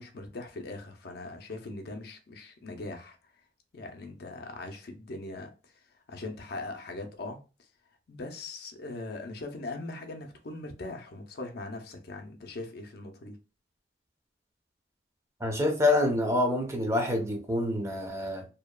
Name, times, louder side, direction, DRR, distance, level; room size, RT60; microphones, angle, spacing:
voice 1, 0.0-3.2 3.7-7.7 8.1-13.4, left 2 dB, 65° left, 0.5 m, -40 dB
voice 2, 15.4-18.5, left 2 dB, 15° right, 0.5 m, -27 dB
2.7 x 2.1 x 2.2 m
head